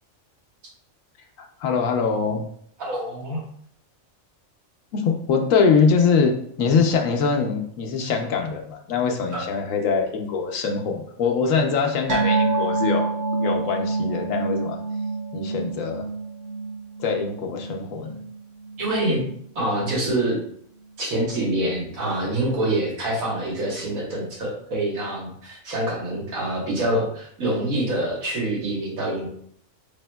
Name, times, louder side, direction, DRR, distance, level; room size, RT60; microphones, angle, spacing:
voice 1, 1.4-2.5 4.9-14.8 15.3-16.1 17.0-18.2, left 5 dB, 75° left, 3 dB, 1.0 m, -23 dB
voice 2, 2.8-3.4 9.3-9.4 18.8-19.2 19.6-20.4 21.0-29.3, right 1 dB, 85° right, -3 dB, 1.7 m, -26 dB
sound 1, 12.1-18.9 19.2-19.4 19.8-19.9, right 3 dB, 45° right, 0.6 m, -27 dB
4.6 x 3.4 x 2.2 m, 0.64 s
omnidirectional pair, 1.4 m